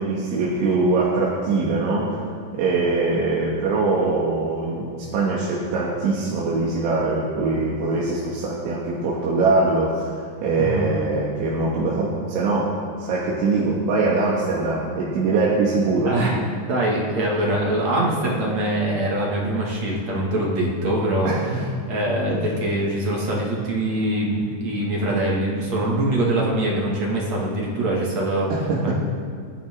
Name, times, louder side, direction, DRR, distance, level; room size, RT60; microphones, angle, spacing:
voice 1, 0.0-2.2 2.5-10.1 10.4-12.7 13.0-16.1 21.3-21.6 22.3-22.5 28.5-28.9, right 3 dB, 80° right, -5 dB, 4.0 m, -22 dB
voice 2, 16.0-16.4 16.7-21.3 21.9-28.5 28.8-28.9, right 1 dB, 45° right, -4 dB, 2.5 m, -23 dB
27.5 x 9.8 x 3.7 m, 2.2 s
omnidirectional pair, 5.5 m